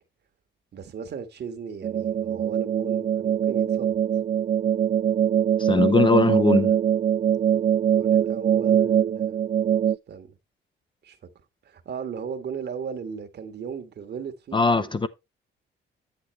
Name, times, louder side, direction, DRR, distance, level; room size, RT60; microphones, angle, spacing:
voice 1, 0.7-4.0 8.0-9.4 10.1-10.4 11.0-11.2 11.6-15.0, right 6 dB, 55° right, 1.5 m, -36 dB
sound 1, 1.8-10.0, right 9 dB, 35° right, 0.4 m, -22 dB
voice 2, 5.6-6.7 14.5-15.1, left 4 dB, 25° left, 0.6 m, -20 dB
8.6 x 8.2 x 3.2 m
cardioid pair, 90°, 20 cm